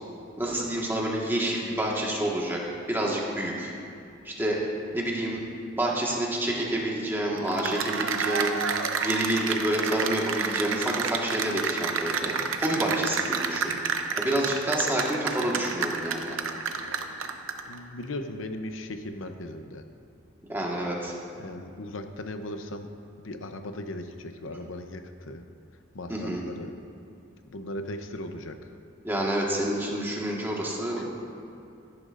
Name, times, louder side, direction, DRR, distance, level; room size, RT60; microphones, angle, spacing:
voice 1, 0.4-3.7 4.2-4.6 4.9-5.4 5.8-8.5 9.0-12.3 12.6-13.7 14.2-16.4 20.5-21.1 26.1-26.4 29.0-31.1, right 1 dB, 10° right, -3 dB, 1.6 m, -28 dB
Cheering / Applause, 7.4-17.7, right 6 dB, 90° right, 0.7 m, -30 dB
voice 2, 17.7-19.9 21.3-22.9 23.2-25.4 25.9-26.7 27.5-28.7 31.0-31.1, left 1 dB, 80° left, 7 dB, 0.7 m, -37 dB
15.5 x 10.5 x 2.5 m, 2.6 s
head